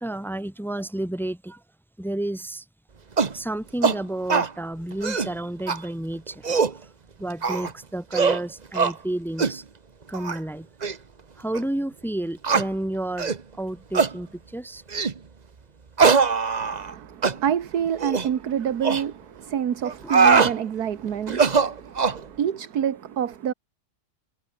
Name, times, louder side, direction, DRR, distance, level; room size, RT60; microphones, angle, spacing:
voice 1, 0.0-1.6 2.0-2.6 3.3-6.7 7.2-9.6 10.1-10.7 11.4-14.8 20.0-20.1, right 1 dB, ahead, 1.6 m, -31 dB
sound 1, 3.2-3.4 3.8-4.0 4.3-4.5 4.9-5.3 5.7-5.8 6.3-6.8 7.4-7.7 8.1-8.4 8.7-8.9 9.4-9.6 10.1-10.4 10.8-10.9 11.5-11.6 12.4-12.7 13.2-13.4 13.9-14.1 14.9-15.2 16.0-16.9 17.2-17.4 18.0-18.3 18.8-19.0 19.8-20.5 21.3-22.2, right 5 dB, 30° right, 0.9 m, -21 dB
voice 2, 16.6-23.5, right 9 dB, 65° right, 1.7 m, -28 dB
omnidirectional pair, 1.8 m